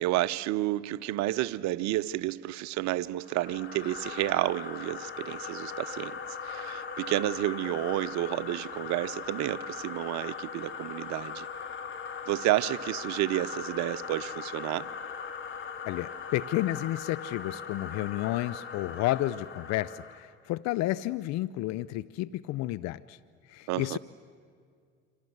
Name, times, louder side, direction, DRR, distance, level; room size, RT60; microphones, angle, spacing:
voice 1, 0.0-6.2 6.4-11.5 12.3-14.9 23.7-24.0, right 15 dB, 60° right, 15 dB, 0.9 m, -30 dB
sound 1, 3.2-20.3, left 6 dB, 35° left, 2.8 m, -40 dB
voice 2, 15.8-23.2 23.5-24.0, left 16 dB, 55° left, 18 dB, 0.7 m, -31 dB
27.5 x 27.0 x 8.0 m, 2.2 s
hypercardioid pair, 75°, 32 cm